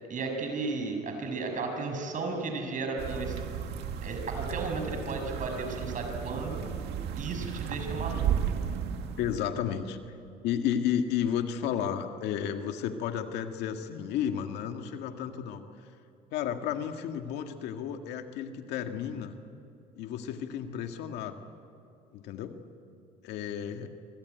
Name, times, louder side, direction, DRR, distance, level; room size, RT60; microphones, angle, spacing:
voice 1, 0.1-3.5 4.0-6.6 7.2-8.2, right 3 dB, 50° right, 4 dB, 6.5 m, -34 dB
sound 1, 3.0-9.4, right 8 dB, 85° right, 2.0 m, -34 dB
voice 2, 9.2-10.0 10.4-15.6 16.3-19.3 20.0-21.4 22.1-22.6 23.2-23.9, left 9 dB, 90° left, 6 dB, 1.8 m, -32 dB
26.0 x 24.5 x 9.3 m, 2.5 s
cardioid pair, 110°, 17 cm